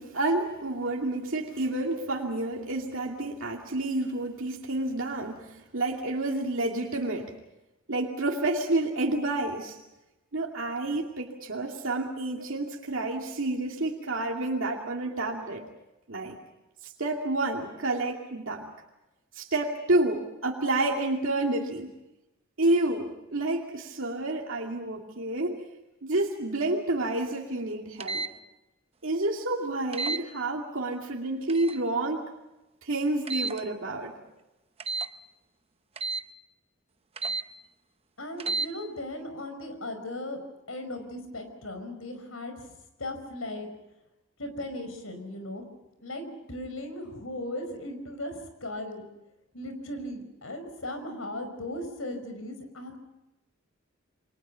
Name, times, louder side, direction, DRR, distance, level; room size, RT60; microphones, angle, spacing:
voice 1, 0.0-7.3 7.9-9.8 10.3-15.6 16.1-16.4 16.8-18.7 19.3-22.0 22.6-25.6 26.0-28.2 29.0-32.3 32.8-34.1, right 2 dB, 70° right, 0 dB, 2.5 m, -29 dB
sound 1, 28.0-28.3 29.9-30.2 31.5-31.8 33.3-33.6 34.8-35.1 36.0-36.2 37.2-37.4 38.4-38.7, right 3 dB, 30° right, 0.8 m, -31 dB
voice 2, 38.2-40.4 40.7-42.7 43.0-43.7 44.4-45.6 46.0-49.0 49.5-53.0, left 1 dB, 80° left, 8 dB, 5.3 m, -37 dB
29.0 x 23.5 x 5.7 m, 0.96 s
head